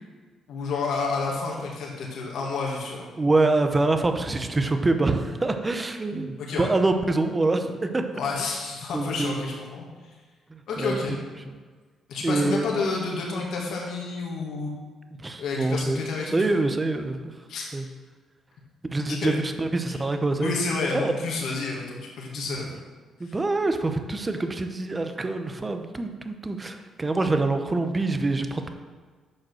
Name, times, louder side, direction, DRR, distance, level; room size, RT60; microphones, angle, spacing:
voice 1, 0.5-3.1 6.4-6.7 8.1-9.9 10.7-11.1 12.1-14.8 15.4-16.6 17.5-17.7 19.1-19.4 19.9-20.0 20.4-22.7 23.2-23.4, left 4 dB, 75° left, -3 dB, 2.0 m, -30 dB
voice 2, 3.2-8.1 8.9-9.5 10.5-11.5 12.2-12.7 15.2-16.0 16.3-17.2 17.7-17.9 18.8-20.6 21.0-21.1 22.4-22.7 23.2-28.7, right 2 dB, 25° right, 7 dB, 0.8 m, -25 dB
7.4 x 5.2 x 6.3 m, 1.5 s
cardioid pair, 90°, 0 cm